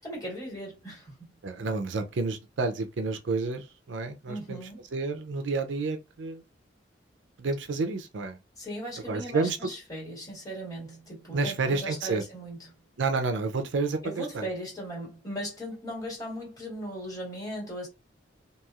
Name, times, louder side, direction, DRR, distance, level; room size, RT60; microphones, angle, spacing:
voice 1, 0.0-1.3 4.3-4.8 8.6-12.7 14.0-17.9, equal, 20° left, 1.8 m, -38 dB
voice 2, 1.4-4.6 4.9-6.4 7.4-8.4 9.1-9.7 11.3-12.2 13.0-14.5, right 3 dB, 75° right, 0.5 m, -30 dB
3.0 x 2.7 x 2.3 m
head